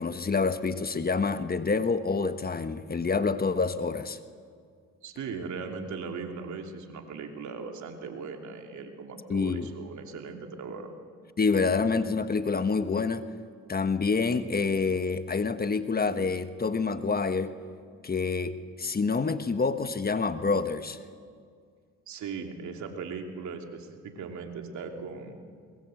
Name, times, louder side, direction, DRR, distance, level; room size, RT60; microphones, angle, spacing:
voice 1, 0.0-4.2 9.3-9.7 11.4-13.2 13.7-17.5 18.0-21.0, left 4 dB, 30° left, 10 dB, 1.3 m, -27 dB
voice 2, 5.0-11.0 22.1-25.4, right 5 dB, 65° right, 3 dB, 2.9 m, -38 dB
23.0 x 21.0 x 7.8 m, 2.1 s
supercardioid pair, 65°, 31 cm